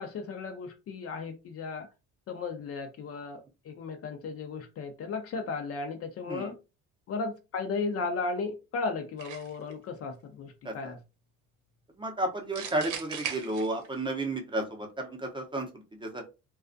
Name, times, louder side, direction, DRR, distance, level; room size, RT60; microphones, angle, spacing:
voice 1, 0.0-1.9 2.3-6.6 7.1-11.0, left 4 dB, 45° left, 0.5 m, -35 dB
sound 1, 9.2-9.7 12.5-14.1, right 8 dB, 65° right, 0.8 m, -38 dB
voice 2, 12.0-15.7 16.0-16.2, right 2 dB, 15° right, 0.7 m, -32 dB
2.3 x 2.3 x 2.5 m
cardioid pair, 100°, 33 cm